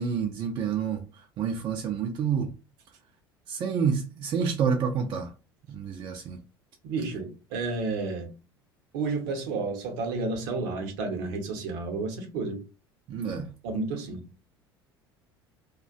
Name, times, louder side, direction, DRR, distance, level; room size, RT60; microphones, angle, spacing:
voice 1, 0.0-2.5 3.5-5.3 5.7-6.4 13.1-13.5, right 6 dB, 40° right, 0.4 m, -28 dB
voice 2, 6.8-8.3 8.9-12.6 13.6-14.3, right 3 dB, 60° right, 0.7 m, -31 dB
2.4 x 2.1 x 2.4 m
figure-of-eight pair, 70°, 13 cm